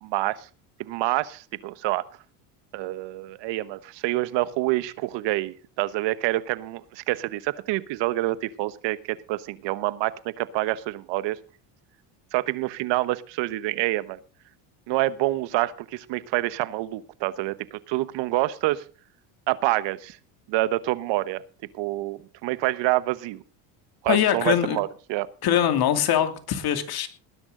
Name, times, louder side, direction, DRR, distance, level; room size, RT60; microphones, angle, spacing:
voice 1, 0.0-0.5 0.8-2.0 2.7-11.4 12.3-14.2 14.9-18.8 19.5-20.2 20.5-21.4 21.7-23.4 24.0-25.3, right 17 dB, 65° right, 16 dB, 1.2 m, -27 dB
voice 2, 24.1-24.8 25.4-27.1, left 10 dB, 50° left, 8 dB, 2.6 m, -22 dB
19.5 x 10.5 x 3.8 m, 0.37 s
supercardioid pair, 100°, 47 cm